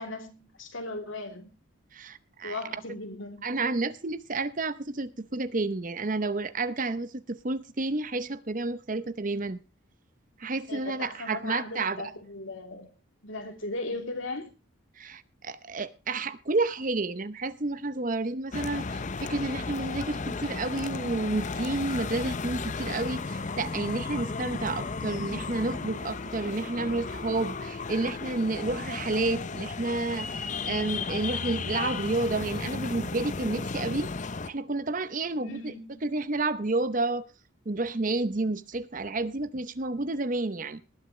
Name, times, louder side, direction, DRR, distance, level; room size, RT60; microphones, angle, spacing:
voice 1, 0.0-1.5 2.4-3.5 10.7-12.9 13.2-14.5 35.4-36.0, left 2 dB, 70° left, 3.2 m, -37 dB
voice 2, 1.9-2.6 3.4-9.6 10.4-12.1 15.0-30.3 30.6-34.1 34.5-35.7 36.0-37.2 37.7-40.8, right 2 dB, 40° right, 0.8 m, -30 dB
sound 1, 18.5-34.5, left 4 dB, 35° left, 0.6 m, -34 dB
19.5 x 11.0 x 3.2 m
head